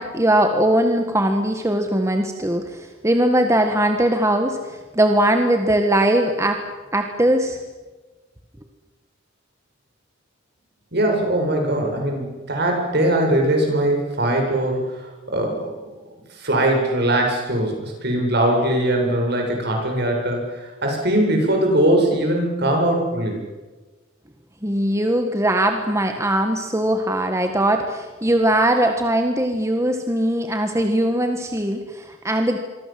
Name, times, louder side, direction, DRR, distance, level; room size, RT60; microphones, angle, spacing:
voice 1, 0.0-6.6 6.9-7.6 24.6-32.6, right 1 dB, 15° right, 5 dB, 1.7 m, -20 dB
voice 2, 10.9-15.7 16.4-23.4, right 1 dB, 55° right, 2 dB, 8.0 m, -21 dB
26.5 x 24.0 x 7.8 m, 1.3 s
head